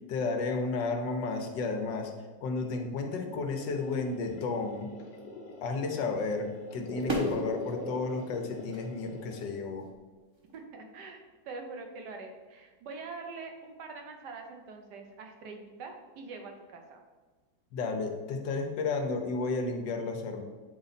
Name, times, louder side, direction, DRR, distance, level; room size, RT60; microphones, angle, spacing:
voice 1, 0.1-2.1 2.4-4.9 5.6-9.9 17.7-20.4, left 3 dB, 85° left, 4 dB, 1.5 m, -32 dB
sound 1, 3.5-9.5, left 3 dB, 70° left, 1.6 m, -42 dB
sound 2, 5.7-5.8 6.3-6.7 7.1-7.5 8.3-9.1 9.8-10.0 10.4-10.6, right 1 dB, 20° right, 0.7 m, -34 dB
voice 2, 10.5-17.0, right 4 dB, 70° right, 3 dB, 1.4 m, -44 dB
8.2 x 3.9 x 4.1 m, 1.3 s
omnidirectional pair, 1.9 m